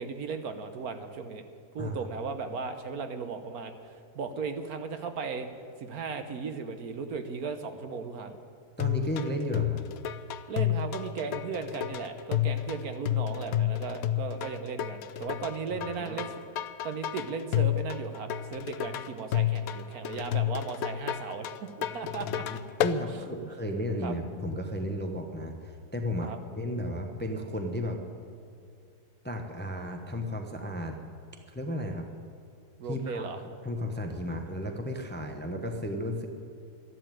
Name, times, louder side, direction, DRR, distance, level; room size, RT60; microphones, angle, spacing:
voice 1, 0.0-1.4 1.7-5.5 5.8-8.4 10.5-16.3 16.8-22.4 23.4-23.5 24.0-24.1 26.2-26.4 32.8-33.4, right 5 dB, 65° right, 8 dB, 1.3 m, -36 dB
voice 2, 1.8-2.1 8.8-9.8 15.7-16.2 22.5-28.0 29.2-31.0 31.5-32.1 32.9-36.3, equal, 10° left, 3 dB, 0.8 m, -34 dB
sound 1, 8.8-23.0, left 12 dB, 65° left, 1.0 m, -31 dB
12.5 x 11.0 x 9.1 m, 2.4 s
omnidirectional pair, 1.8 m